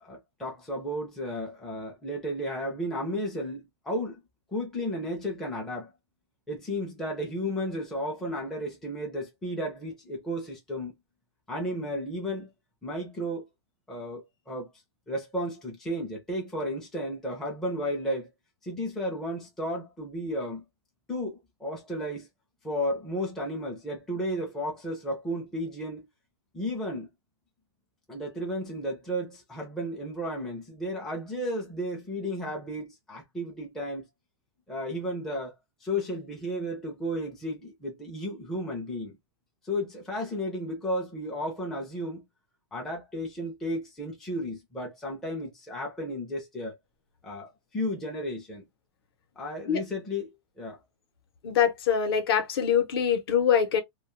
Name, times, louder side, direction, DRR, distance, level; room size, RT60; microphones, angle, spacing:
voice 1, 0.0-4.2 4.5-5.9 6.5-10.9 11.5-12.5 12.8-13.4 13.9-14.7 15.1-18.3 18.6-20.6 21.1-22.3 22.6-26.1 26.5-27.1 28.1-34.1 34.7-35.5 35.8-39.2 39.6-42.2 42.7-46.8 47.2-48.6 49.4-50.3 50.6-50.8, equal, 5° left, 0.4 m, -33 dB
voice 2, 51.4-53.8, left 8 dB, 55° left, 0.7 m, -24 dB
2.2 x 2.1 x 3.0 m
supercardioid pair, 170°, 15 cm